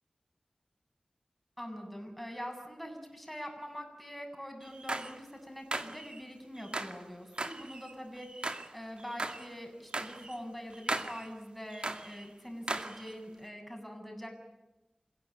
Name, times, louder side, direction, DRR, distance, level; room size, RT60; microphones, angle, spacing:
voice 1, 1.6-14.3, equal, 5° left, 3 dB, 7.9 m, -44 dB
sound 1, 4.6-5.2 5.7-6.2 6.6-7.0 7.4-8.7 9.0-9.5 9.9-10.4 10.7-11.3 11.7-12.2 12.7-13.1, right 2 dB, 50° right, 2.3 m, -38 dB
28.5 x 17.0 x 8.8 m, 0.98 s
wide cardioid pair, 75°, 2 cm